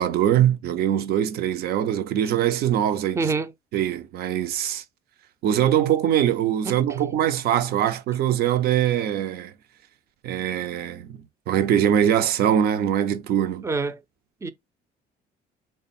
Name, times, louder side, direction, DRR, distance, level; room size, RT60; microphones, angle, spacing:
voice 1, 0.0-3.2 3.7-4.8 5.4-9.5 10.2-11.2 11.5-13.7, right 10 dB, 70° right, 0.5 m, -22 dB
voice 2, 3.2-3.5 6.6-6.8 13.6-14.0 14.4-14.5, right 4 dB, 15° right, 0.4 m, -26 dB
3.4 x 2.2 x 4.0 m
cardioid pair, 110°, 17 cm